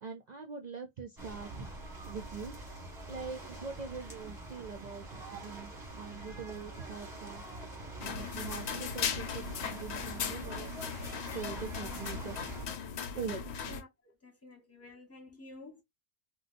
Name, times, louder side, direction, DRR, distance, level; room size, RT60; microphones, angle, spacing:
voice 1, 0.0-1.7 2.1-2.5 3.1-7.4 8.0-10.8 11.3-12.3 12.6-12.7 13.1-13.4, right 5 dB, 50° right, 0.6 m, -43 dB
sound 1, 1.2-12.7, right 2 dB, 20° right, 1.2 m, -45 dB
sound 2, 8.0-13.8, left 6 dB, 80° left, 0.9 m, -38 dB
voice 2, 13.7-15.8, left 2 dB, 15° left, 0.9 m, -51 dB
4.0 x 2.2 x 2.5 m
omnidirectional pair, 1.1 m